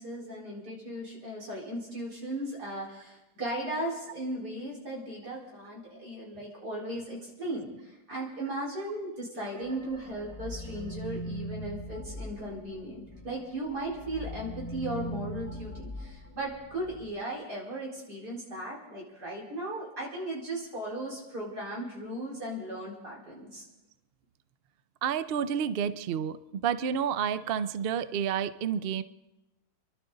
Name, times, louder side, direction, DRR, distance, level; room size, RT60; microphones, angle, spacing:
voice 1, 0.0-23.7, right 1 dB, 80° right, -4 dB, 5.0 m, -37 dB
sound 1, 9.5-13.4 13.7-17.1, equal, 10° left, 2.3 m, -41 dB
voice 2, 25.0-26.4 26.6-29.0, right 8 dB, 60° right, 13 dB, 0.6 m, -29 dB
28.5 x 11.5 x 3.9 m, 1.0 s
omnidirectional pair, 1.7 m